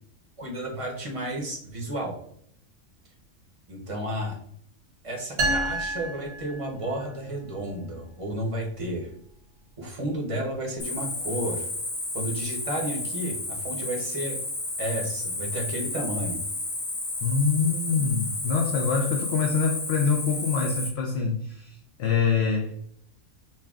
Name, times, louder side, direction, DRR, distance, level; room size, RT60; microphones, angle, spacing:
voice 1, 0.4-2.1 3.7-4.4 5.0-9.1 9.8-11.7 12.1-14.4 14.8-16.4, right 1 dB, 30° right, -1 dB, 0.7 m, -32 dB
sound 1, 5.4-7.2, right 2 dB, 55° right, 1.0 m, -29 dB
Cricket, 10.8-20.9, left 2 dB, 80° left, 1.6 m, -32 dB
voice 2, 17.2-22.7, left 5 dB, 65° left, 2 dB, 0.7 m, -25 dB
5.6 x 2.3 x 2.3 m, 0.66 s
omnidirectional pair, 1.4 m